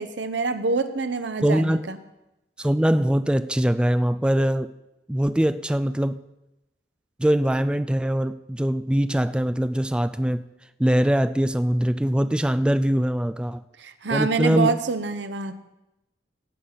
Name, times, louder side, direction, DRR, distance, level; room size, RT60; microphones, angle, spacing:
voice 1, 0.0-2.0 13.8-15.5, right 4 dB, 75° right, 11 dB, 0.9 m, -26 dB
voice 2, 1.4-1.9 2.6-4.7 5.1-6.2 7.2-10.5 10.8-13.6 14.1-14.8, equal, 5° right, 12 dB, 0.3 m, -22 dB
16.5 x 6.8 x 5.7 m, 0.93 s
head